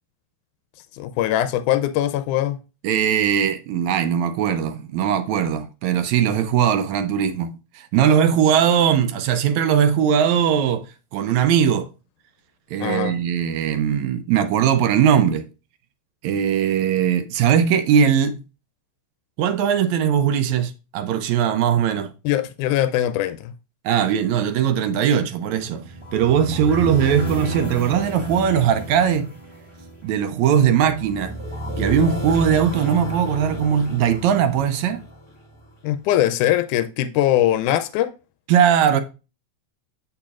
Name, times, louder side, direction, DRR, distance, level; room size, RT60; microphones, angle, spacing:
voice 1, 0.9-2.6 12.8-13.1 22.2-23.5 35.8-38.1, left 12 dB, 90° left, 2.1 m, -21 dB
voice 2, 2.8-10.9 11.1-11.9 12.7-15.5 16.2-18.4 19.4-22.1 23.9-25.9 26.1-29.3 30.0-31.4 31.8-35.0 38.5-39.0, right 8 dB, 75° right, 1.9 m, -20 dB
sound 1, 25.6-35.7, right 1 dB, 15° left, 1.0 m, -32 dB
7.6 x 6.9 x 2.4 m
omnidirectional pair, 3.5 m